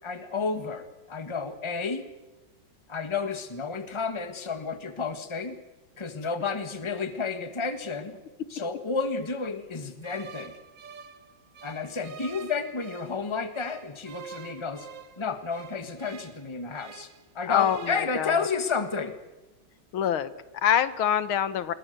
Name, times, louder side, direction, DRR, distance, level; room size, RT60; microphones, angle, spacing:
voice 1, 0.0-2.1 2.9-5.6 6.0-8.2 8.5-10.5 11.6-14.9 15.2-17.1 17.3-19.1, left 4 dB, 15° left, 9 dB, 1.6 m, -31 dB
sound 1, 10.0-13.2 13.5-17.2 17.5-18.0, right 7 dB, 65° right, 1.8 m, -46 dB
voice 2, 17.5-18.4 19.9-21.7, left 9 dB, 85° left, 14 dB, 2.0 m, -26 dB
26.5 x 22.5 x 6.8 m, 1.1 s
omnidirectional pair, 2.2 m